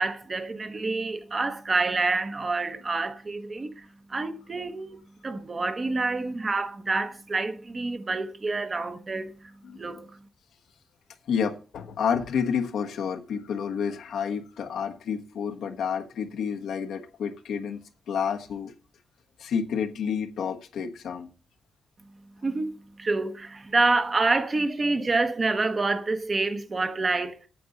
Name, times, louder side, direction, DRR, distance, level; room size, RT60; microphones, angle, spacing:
voice 1, 0.0-5.0 5.2-9.3 9.8-10.1 22.4-27.4, right 3 dB, 30° right, 1.0 m, -27 dB
voice 2, 11.3-17.8 18.1-18.7 19.4-21.3, left 7 dB, 85° left, 1.3 m, -29 dB
8.6 x 7.8 x 5.4 m
wide cardioid pair, 160°, 0 cm